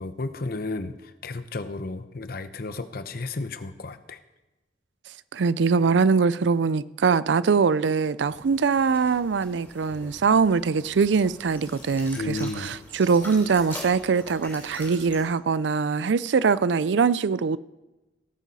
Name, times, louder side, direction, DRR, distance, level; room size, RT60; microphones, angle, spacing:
voice 1, 0.0-4.2 12.1-12.8, left 3 dB, 55° left, 0.8 m, -33 dB
voice 2, 5.3-17.6, right 5 dB, 90° right, 0.4 m, -22 dB
sound 1, 8.3-15.2, left 1 dB, 15° left, 3.2 m, -44 dB
17.5 x 9.2 x 4.1 m
head